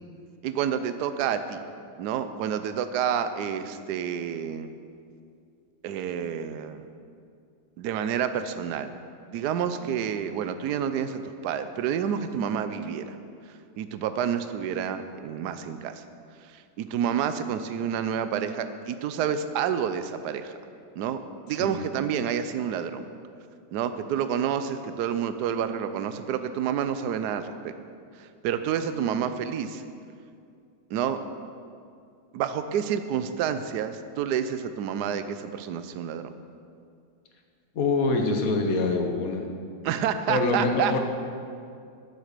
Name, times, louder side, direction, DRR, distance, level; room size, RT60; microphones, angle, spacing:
voice 1, 0.4-1.6 2.0-4.7 5.8-6.9 7.8-8.9 9.3-13.2 13.8-16.0 16.5-20.5 21.0-23.1 23.7-27.7 28.2-29.8 30.9-31.2 32.3-36.3 39.8-41.0, right 8 dB, 65° right, 10 dB, 1.2 m, -29 dB
voice 2, 37.7-39.5 40.3-41.0, left 3 dB, 50° left, 4 dB, 1.5 m, -25 dB
12.5 x 7.6 x 6.7 m, 2.3 s
omnidirectional pair, 2.0 m